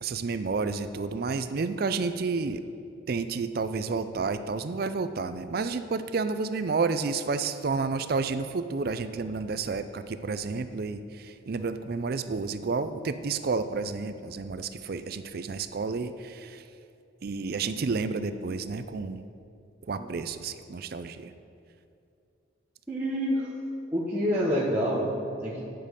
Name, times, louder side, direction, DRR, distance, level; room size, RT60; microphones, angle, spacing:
voice 1, 0.0-2.6 3.1-16.6 17.2-19.2 19.9-21.3, right 4 dB, 50° right, 11 dB, 0.4 m, -30 dB
voice 2, 22.9-23.5 23.9-25.6, equal, 10° right, -9 dB, 1.2 m, -27 dB
9.7 x 5.2 x 6.5 m, 2.6 s
head